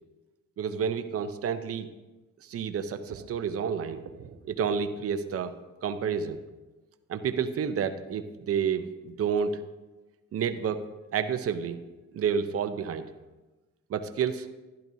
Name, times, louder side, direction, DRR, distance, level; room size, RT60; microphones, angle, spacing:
voice 1, 0.6-1.9 2.5-5.5 5.8-6.4 7.1-9.6 10.3-10.8 11.1-11.8 12.1-13.0 13.9-14.5, right 7 dB, 50° right, 9 dB, 0.7 m, -30 dB
12.5 x 10.5 x 2.7 m, 1.1 s
cardioid pair, 90°, 30 cm